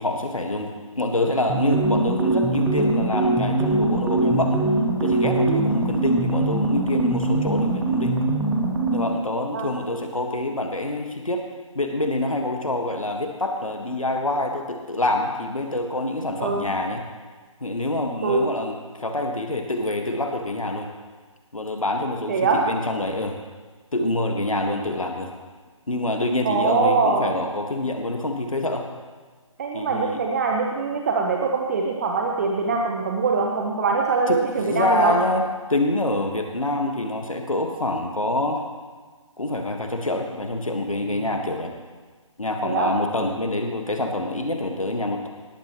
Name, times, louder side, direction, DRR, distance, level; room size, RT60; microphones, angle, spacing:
voice 1, 0.0-4.6 5.0-8.2 8.9-11.4 11.7-17.0 17.6-20.9 21.5-23.4 23.9-25.3 25.9-28.9 29.7-30.2 34.3-35.4 35.7-38.7 39.4-41.7 42.4-45.3, left 2 dB, 75° left, 4 dB, 1.6 m, -26 dB
sound 1, 1.5-9.2, right 2 dB, 10° right, 1.4 m, -22 dB
voice 2, 22.3-22.6 26.4-27.2 29.6-35.1 42.6-42.9, right 4 dB, 30° right, 1 dB, 1.1 m, -23 dB
19.5 x 14.5 x 3.1 m, 1.4 s
figure-of-eight pair, 145°, 17 cm